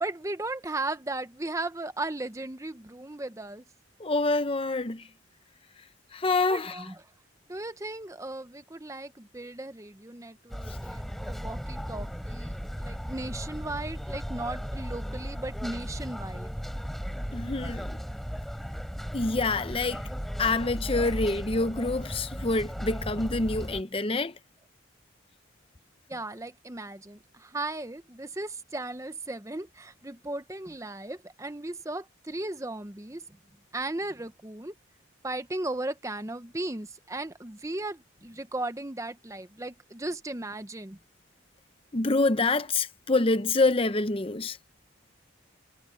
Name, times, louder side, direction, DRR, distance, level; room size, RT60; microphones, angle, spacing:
voice 1, 0.0-3.6 6.5-7.0 7.5-12.5 12.8-16.5 26.1-33.2 33.7-34.7 35.2-41.0, right 2 dB, 15° right, 0.7 m, -36 dB
voice 2, 4.0-5.0 6.1-6.8 10.7-10.8 17.3-17.9 19.1-20.0 20.4-24.3 41.9-44.6, left 3 dB, 25° left, 0.7 m, -26 dB
sound 1, 10.5-23.8, equal, ahead, 3.7 m, -36 dB
head